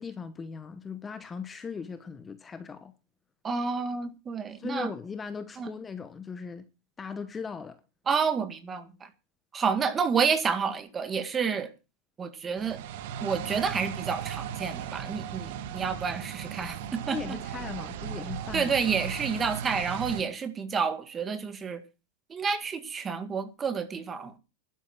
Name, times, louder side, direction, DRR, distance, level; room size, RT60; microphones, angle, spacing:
voice 1, 0.0-2.9 4.6-6.7 7.0-7.8 17.1-18.7, left 5 dB, 15° left, 0.9 m, -38 dB
voice 2, 3.4-4.9 5.6-5.7 8.1-9.1 9.5-11.7 12.2-12.8 13.2-17.2 18.5-21.8 22.3-24.3, right 5 dB, 20° right, 1.9 m, -29 dB
sound 1, 12.6-20.2, right 9 dB, 60° right, 1.5 m, -37 dB
12.0 x 10.5 x 6.1 m
supercardioid pair, 150°, 0 cm